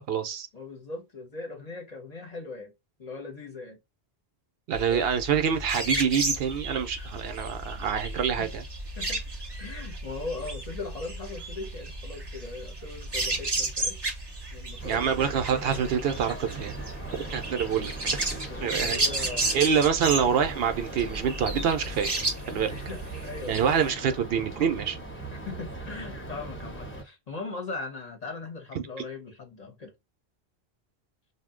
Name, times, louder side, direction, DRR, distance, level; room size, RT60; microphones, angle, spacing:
voice 1, 0.0-0.5 4.7-8.6 14.8-16.7 17.3-17.9 18.6-19.0 19.5-22.1 22.5-22.7 23.5-25.0 28.7-28.8, right 7 dB, 75° right, 0.8 m, -26 dB
voice 2, 0.5-2.7 3.0-3.8 4.9-5.1 7.0-7.1 8.4-8.5 9.0-9.2 9.6-14.0 14.5-15.1 17.1-17.4 17.6-17.9 18.4-19.6 22.6-23.8 25.3-29.9, left 3 dB, 45° left, 0.8 m, -39 dB
sound 1, 4.7-23.9, right 2 dB, 30° right, 0.6 m, -33 dB
sound 2, 14.8-27.0, right 2 dB, 15° left, 0.7 m, -40 dB
2.6 x 2.1 x 3.6 m
omnidirectional pair, 1.0 m